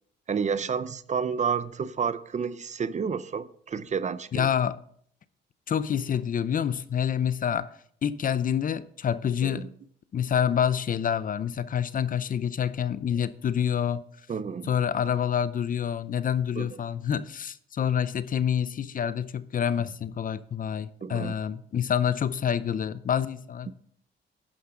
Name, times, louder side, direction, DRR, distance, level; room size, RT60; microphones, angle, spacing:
voice 1, 0.3-4.5 9.4-9.7 14.3-14.7 16.6-16.7 21.0-21.3, right 6 dB, 35° right, 0.6 m, -30 dB
voice 2, 4.3-4.8 5.7-7.7 8.0-9.7 10.1-14.0 14.7-23.7, left 8 dB, 45° left, 0.6 m, -27 dB
11.5 x 9.3 x 3.8 m
cardioid pair, 90°, 20 cm